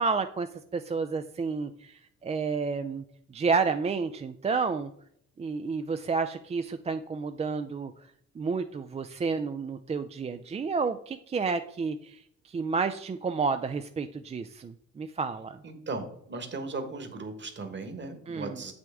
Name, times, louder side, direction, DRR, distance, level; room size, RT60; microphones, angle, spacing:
voice 1, 0.0-3.0 3.3-4.9 5.4-8.1 8.4-15.6 18.3-18.6, right 4 dB, 20° right, 8 dB, 0.3 m, -30 dB
voice 2, 15.6-18.7, right 3 dB, 40° right, 7 dB, 1.4 m, -37 dB
7.5 x 6.1 x 3.5 m, 0.71 s
cardioid pair, 90°, 30 cm